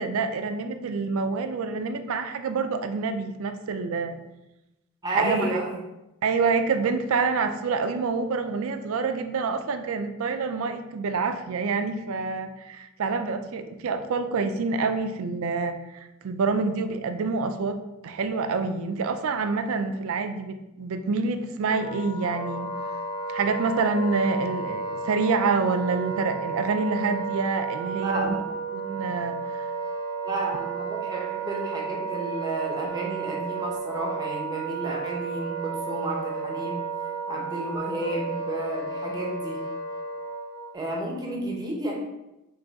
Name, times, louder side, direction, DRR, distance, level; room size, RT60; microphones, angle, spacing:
voice 1, 0.0-4.2 5.1-5.6 6.2-22.7 23.3-28.3 28.7-29.7, right 4 dB, 70° right, 7 dB, 0.4 m, -27 dB
voice 2, 5.0-5.8 28.0-28.4 30.2-36.8 37.3-39.6 40.7-41.9, right 1 dB, 20° right, -1 dB, 0.7 m, -31 dB
Wind instrument woodwind instrument, 21.6-40.7, right 5 dB, 20° left, 0.4 m, -32 dB
3.5 x 3.2 x 3.9 m, 0.95 s
head